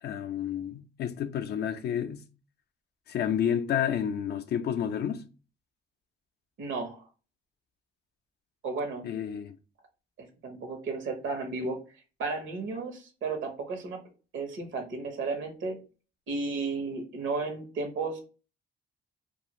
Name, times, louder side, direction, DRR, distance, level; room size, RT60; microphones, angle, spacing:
voice 1, 0.0-2.2 3.1-5.2 9.0-9.6, left 9 dB, 55° left, 0.4 m, -30 dB
voice 2, 6.6-7.0 8.6-9.1 10.2-11.8 12.2-14.0 14.3-15.8 16.3-18.2, right 3 dB, 75° right, 0.9 m, -33 dB
2.4 x 2.4 x 2.9 m
cardioid pair, 90°, 20 cm